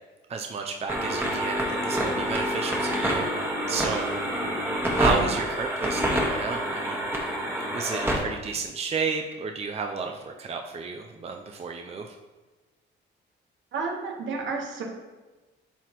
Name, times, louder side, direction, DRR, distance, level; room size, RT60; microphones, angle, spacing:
voice 1, 0.3-3.3 3.7-4.2 4.9-7.3 7.7-12.2, right 5 dB, 30° right, 3 dB, 0.5 m, -32 dB
sound 1, 0.9-8.2, equal, 10° right, 1.4 m, -27 dB
voice 2, 13.7-14.8, right 4 dB, 70° right, 0 dB, 1.4 m, -31 dB
11.0 x 4.0 x 3.1 m, 1.2 s
cardioid pair, 90°, 20 cm